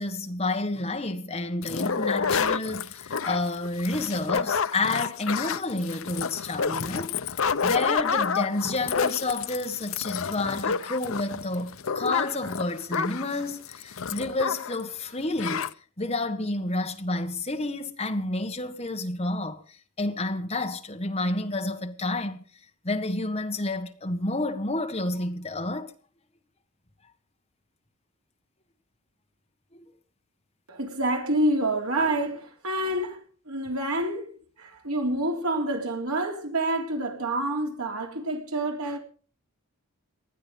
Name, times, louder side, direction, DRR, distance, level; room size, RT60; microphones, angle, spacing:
voice 1, 0.0-7.2 7.6-15.7 16.0-19.6 20.0-22.4 22.8-25.9 29.7-29.8, left 2 dB, 25° left, 1.7 m, -30 dB
sound 1, 1.6-14.8 15.1-15.2 15.4-15.7, left 6 dB, 65° left, 0.7 m, -29 dB
voice 2, 30.7-33.2 33.5-34.3 34.6-39.0, right 1 dB, 75° right, 3.5 m, -27 dB
19.5 x 12.0 x 5.3 m
head